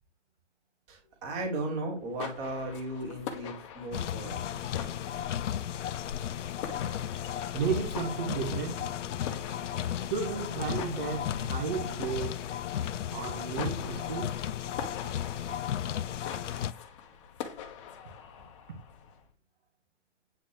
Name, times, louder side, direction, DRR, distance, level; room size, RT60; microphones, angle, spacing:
voice 1, 0.9-4.3, right 2 dB, 20° right, 3.4 m, -36 dB
sound 1, 1.9-19.3, left 8 dB, 25° left, 1.4 m, -45 dB
sound 2, 3.9-16.7, left 10 dB, 75° left, 0.8 m, -34 dB
voice 2, 7.5-8.9 10.1-12.5 13.1-14.4, right 6 dB, 40° right, 2.1 m, -33 dB
9.0 x 6.0 x 6.5 m
hypercardioid pair, 170°, 36 cm